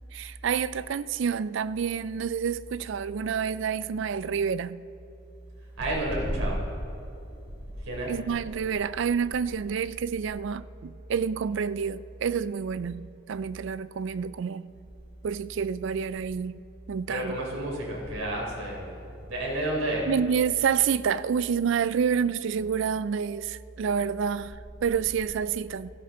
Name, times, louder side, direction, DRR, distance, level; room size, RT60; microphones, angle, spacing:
voice 1, 0.1-4.8 8.1-14.7 15.2-16.6 16.9-17.4 20.1-25.9, right 7 dB, 60° right, 0.3 m, -28 dB
voice 2, 5.8-6.7 7.8-8.1 17.1-20.1, right 1 dB, 80° right, 3.7 m, -30 dB
16.5 x 14.5 x 3.8 m
head